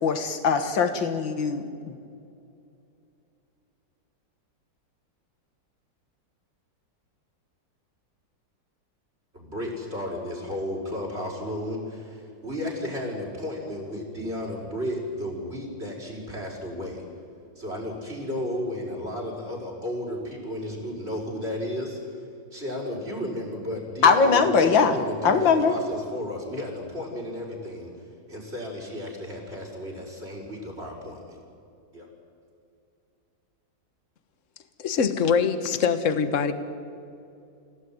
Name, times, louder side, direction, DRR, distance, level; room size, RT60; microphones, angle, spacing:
voice 1, 0.0-2.0 24.0-25.0 25.2-25.7, left 5 dB, 80° left, 8 dB, 2.3 m, -21 dB
voice 2, 9.3-17.0 17.6-22.2 22.5-27.9 28.3-31.4 31.9-32.1, left 1 dB, 35° right, 0 dB, 6.1 m, -33 dB
voice 3, 34.8-36.5, left 6 dB, 45° left, 10 dB, 1.5 m, -23 dB
28.0 x 17.0 x 9.6 m, 2.6 s
omnidirectional pair, 2.0 m